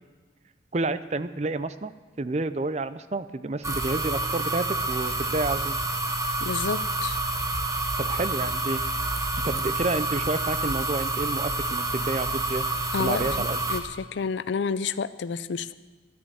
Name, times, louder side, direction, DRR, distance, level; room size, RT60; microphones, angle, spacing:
voice 1, 0.7-1.9 2.2-5.8 8.0-8.8 9.4-12.7 13.0-13.6, right 2 dB, 35° right, 13 dB, 0.5 m, -29 dB
sound 1, 3.6-13.8, right 2 dB, 15° right, 1.0 m, -28 dB
voice 2, 6.4-7.2 12.9-13.3 13.7-15.7, left 5 dB, 80° left, 14 dB, 0.5 m, -29 dB
13.0 x 9.4 x 8.0 m, 1.4 s
head